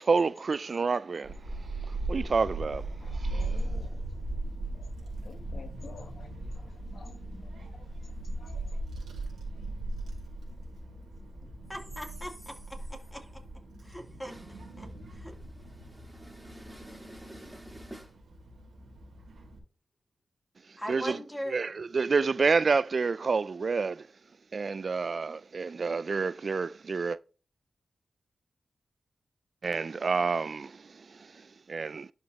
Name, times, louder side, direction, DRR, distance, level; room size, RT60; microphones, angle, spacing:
voice 1, 0.1-1.4 1.9-2.9 3.2-3.3 20.9-21.2 21.5-24.1 24.5-27.2 29.6-31.2 31.7-32.1, right 4 dB, 60° right, 0.3 m, -28 dB
voice 2, 0.7-2.3 2.9-8.8, left 4 dB, 70° left, 1.3 m, -54 dB
Child speech kid speaking / Wind, 1.2-19.6, right 2 dB, 85° right, 2.5 m, -38 dB
voice 3, 11.4-13.4 13.8-14.3 14.8-15.3 20.8-21.7, equal, 15° left, 2.9 m, -41 dB
voice 4, 14.3-18.2, right 1 dB, 15° right, 3.4 m, -49 dB
11.5 x 5.1 x 2.9 m
cardioid pair, 40°, 0 cm